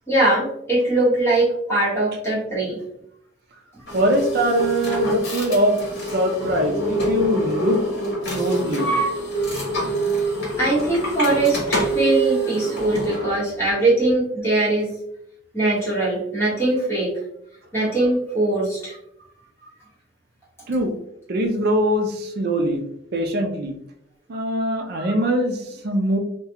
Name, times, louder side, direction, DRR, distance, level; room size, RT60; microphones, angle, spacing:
voice 1, 0.1-2.8 10.6-11.6 11.9-15.0 15.5-17.1 17.7-19.0, right 2 dB, 15° left, -8 dB, 1.1 m, -21 dB
sound 1, 3.9-13.3, right 1 dB, 55° left, 0.9 m, -25 dB
voice 2, 3.9-5.8 6.1-7.8 8.3-8.9 13.3-13.4 20.7-20.9 21.3-22.8 23.1-23.8 24.3-26.2, equal, 55° right, 4 dB, 0.4 m, -22 dB
2.3 x 2.2 x 2.8 m, 0.76 s
head